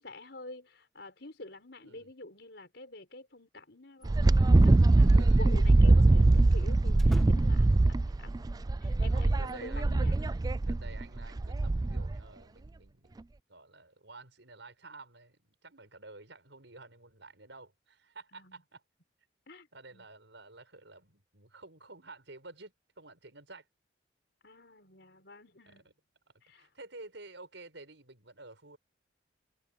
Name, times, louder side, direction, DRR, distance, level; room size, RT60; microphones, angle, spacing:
voice 1, 0.0-10.4 18.3-18.6 19.5-19.7 19.9-20.0 24.4-25.8 26.5-26.7, left 2 dB, 60° left, 5.8 m, -48 dB
sound 1, 4.0-4.7 4.9-5.0 6.9-7.8 9.4-10.3, equal, ahead, 2.1 m, -46 dB
Wind, 4.0-12.2, right 2 dB, 20° right, 0.3 m, -23 dB
voice 2, 5.1-5.4 6.7-6.8 9.1-10.0 10.7-18.8 19.7-23.7 25.7-25.8 26.6-28.8, right 3 dB, 75° right, 5.9 m, -51 dB
head